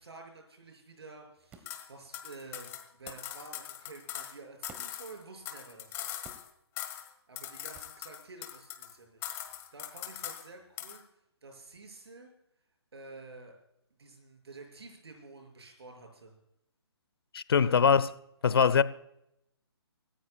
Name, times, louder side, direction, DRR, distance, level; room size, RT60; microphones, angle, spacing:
voice 1, 0.0-6.1 7.3-11.0 11.4-12.3 12.9-13.5 14.0-16.3 17.6-17.7, right 3 dB, 70° right, 6.4 m, -50 dB
sound 1, 1.5-1.8 3.1-3.3 4.7-5.0 6.2-6.6 7.7-8.0, right 4 dB, 10° right, 1.3 m, -52 dB
sound 2, 1.7-1.9 2.1-4.3 4.6-6.5 6.8-7.1 7.4-8.9 9.2-10.5 10.8-11.0, left 12 dB, 20° left, 1.5 m, -41 dB
voice 2, 17.3-18.1 18.4-18.8, left 6 dB, 60° left, 0.8 m, -22 dB
25.5 x 14.5 x 2.3 m
figure-of-eight pair, 145°, 14 cm